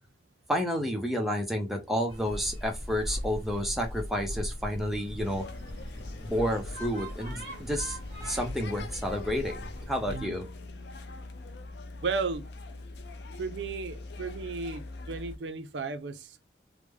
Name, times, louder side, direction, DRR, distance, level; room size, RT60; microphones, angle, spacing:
voice 1, 0.5-5.4 6.2-10.5, equal, ahead, 0.5 m, -30 dB
sound 1, 2.1-10.3, equal, 60° right, 1.5 m, -39 dB
sound 2, 5.2-15.4, left 2 dB, 70° left, 0.4 m, -43 dB
voice 2, 10.1-10.4 12.0-12.4 13.4-16.4, right 4 dB, 80° right, 0.5 m, -34 dB
3.2 x 2.1 x 3.4 m
head